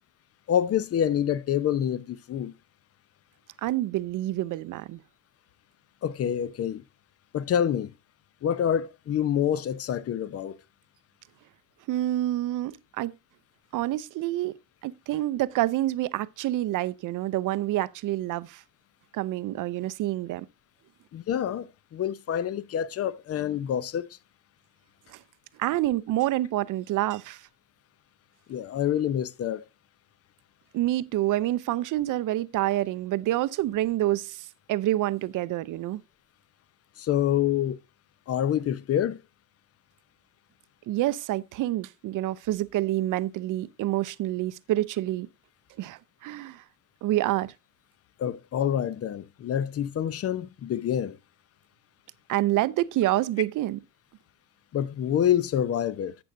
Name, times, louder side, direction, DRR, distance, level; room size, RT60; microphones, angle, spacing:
voice 1, 0.5-2.5 6.0-6.8 7.3-7.9 8.4-10.6 21.1-24.1 28.5-29.6 37.0-37.8 38.3-39.2 48.2-51.2 54.7-56.2, left 10 dB, 35° left, 0.7 m, -27 dB
voice 2, 3.6-5.0 11.9-13.1 13.7-14.6 14.8-18.6 19.1-20.5 25.1-25.2 25.6-27.4 30.7-36.0 40.9-45.3 45.8-46.6 47.0-47.5 52.3-53.8, right 15 dB, 50° right, 0.6 m, -27 dB
11.5 x 7.8 x 2.6 m
supercardioid pair, 95°, 40 cm